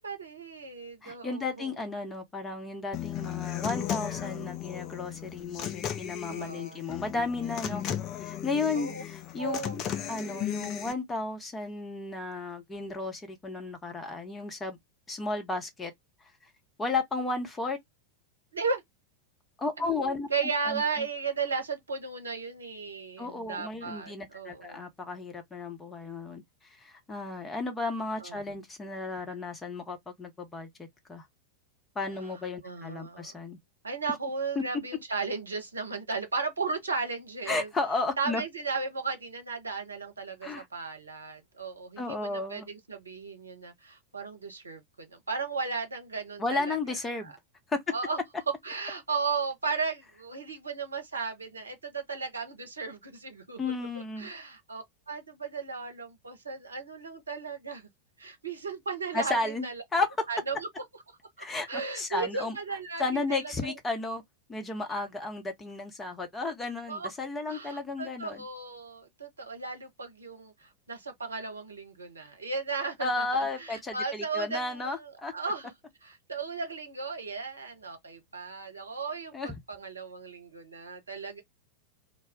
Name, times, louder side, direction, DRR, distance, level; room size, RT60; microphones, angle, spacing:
voice 1, 0.0-1.7 6.3-6.9 8.7-9.0 9.4-9.8 18.5-18.8 19.8-24.8 28.2-28.4 32.6-33.4 33.8-37.7 38.2-46.8 47.2-47.3 47.9-48.2 48.6-53.6 54.2-57.9 58.2-59.8 60.3-60.7 61.4-63.8 66.9-67.1 67.5-75.7 76.0-81.4, right 4 dB, 75° right, 0.7 m, -35 dB
voice 2, 1.0-7.8 8.1-9.8 10.1-14.8 15.1-15.9 16.2-16.5 16.8-17.8 19.6-20.3 20.7-21.1 23.2-31.3 31.9-33.6 34.6-34.7 37.5-38.4 40.4-40.7 42.0-42.7 46.4-47.3 47.7-47.8 53.6-54.3 59.1-60.3 61.4-62.6 63.0-64.2 64.5-68.4 73.0-75.3 79.3-79.5, left 3 dB, 15° left, 0.8 m, -33 dB
Human voice / Acoustic guitar, 2.9-10.9, left 10 dB, 35° left, 0.4 m, -35 dB
2.2 x 2.0 x 3.5 m
figure-of-eight pair, 90°, 0 cm